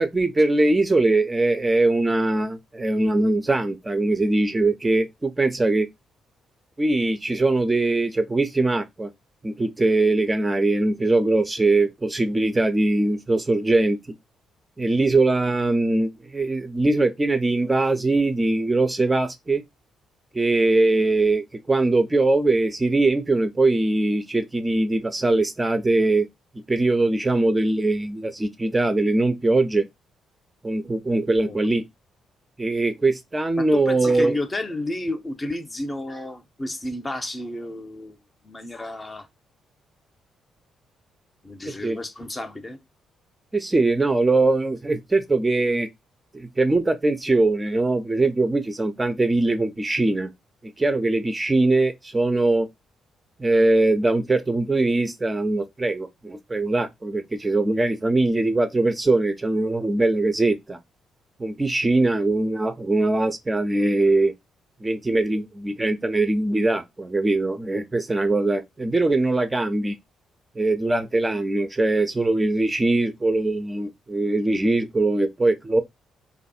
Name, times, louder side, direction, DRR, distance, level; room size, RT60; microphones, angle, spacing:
voice 1, 0.0-5.9 6.8-9.1 9.4-14.0 14.8-19.6 20.3-26.3 26.7-29.9 30.6-31.8 32.6-34.4 41.8-42.0 43.5-45.9 46.3-50.3 50.8-52.7 53.4-60.8 61.4-64.3 64.8-70.0 70.6-75.8, right 2 dB, 20° right, 0.4 m, -21 dB
voice 2, 33.6-38.2 38.4-39.3 41.4-42.8, left 1 dB, 25° left, 0.6 m, -31 dB
2.6 x 2.3 x 4.0 m
figure-of-eight pair, 40°, 0 cm